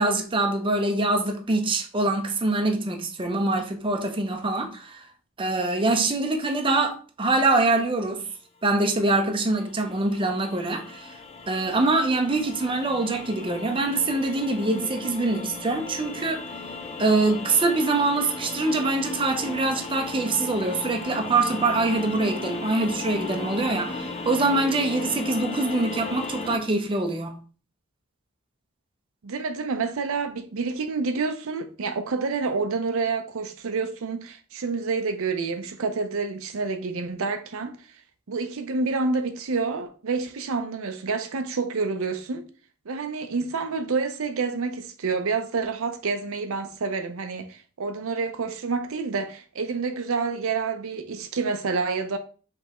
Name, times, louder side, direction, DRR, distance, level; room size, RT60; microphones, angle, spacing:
voice 1, 0.0-5.0 5.4-8.2 8.6-11.1 11.5-16.4 17.0-27.3, right 2 dB, 25° right, 0.6 m, -24 dB
sound 1, 9.1-26.6, left 3 dB, 30° left, 0.5 m, -36 dB
voice 2, 29.2-37.9 38.3-42.5 42.9-52.2, right 4 dB, 70° right, 0.5 m, -28 dB
5.4 x 3.4 x 2.9 m
head